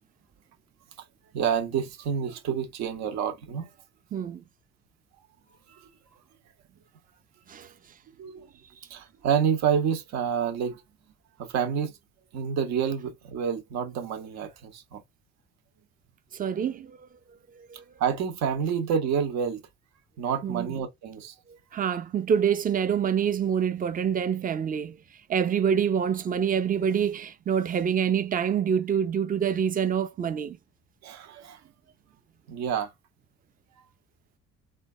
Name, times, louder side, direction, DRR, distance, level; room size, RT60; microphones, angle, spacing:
voice 1, 1.3-3.7 5.7-5.9 8.2-8.5 8.9-10.8 11.4-12.0 12.3-15.0 18.0-19.6 20.2-21.3 31.0-31.6 32.5-32.9, right 7 dB, 65° right, 0.9 m, -28 dB
voice 2, 4.1-4.4 7.5-7.7 16.3-17.1 17.7-17.8 20.4-20.7 21.7-25.0 25.3-30.6, right 8 dB, 30° right, 0.5 m, -26 dB
3.2 x 2.3 x 2.4 m
cardioid pair, 90°, 29 cm